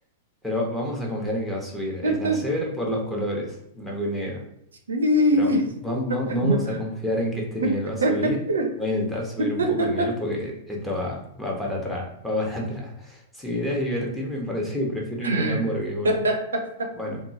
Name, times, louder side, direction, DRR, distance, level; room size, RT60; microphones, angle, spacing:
voice 1, 0.4-4.4 5.4-5.5 5.8-8.4 8.7-16.2 16.9-17.2, left 1 dB, 5° left, -2 dB, 0.8 m, -29 dB
voice 2, 2.0-2.4 4.9-5.6 6.3-6.6 7.6-7.7 8.0-8.7 9.4-10.1 15.2-15.6 16.0-16.9, right 1 dB, 85° right, 4 dB, 0.5 m, -23 dB
2.9 x 2.3 x 2.7 m, 0.74 s
hypercardioid pair, 110°, 0 cm